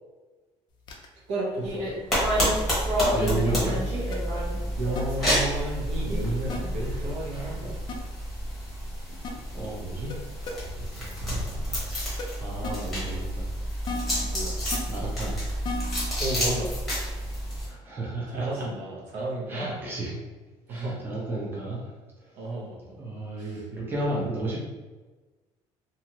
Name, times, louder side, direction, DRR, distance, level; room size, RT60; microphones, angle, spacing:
sound 1, 0.9-1.1 2.4-2.5 3.1-3.2 4.1-4.2 5.0-5.1 6.5-6.6 7.9-8.0 9.2-9.3 10.1-10.2 10.5-10.6 12.2-12.3 12.6-12.7 13.9-14.3 14.7-14.8 15.6-16.1 16.9-17.1, left 4 dB, 40° left, 0.4 m, -34 dB
voice 1, 1.3-1.9 4.7-8.0 11.0-11.4 14.2-14.6 16.2-16.7 18.3-19.9 20.7-21.0 22.4-23.0 23.4-23.6, right 2 dB, 65° right, -3 dB, 0.8 m, -33 dB
sound 2, 1.6-7.8, equal, 50° right, 1.3 m, -32 dB
sound 3, 2.1-17.7, equal, ahead, 1.1 m, -30 dB
voice 2, 3.1-3.8 9.5-10.2 12.3-13.5 14.9-15.3 17.7-18.5 19.5-20.1 20.7-21.9 22.2-22.3 23.0-24.7, right 2 dB, 15° right, -5 dB, 0.6 m, -32 dB
2.7 x 2.4 x 2.9 m, 1.2 s
cardioid pair, 170°, 12 cm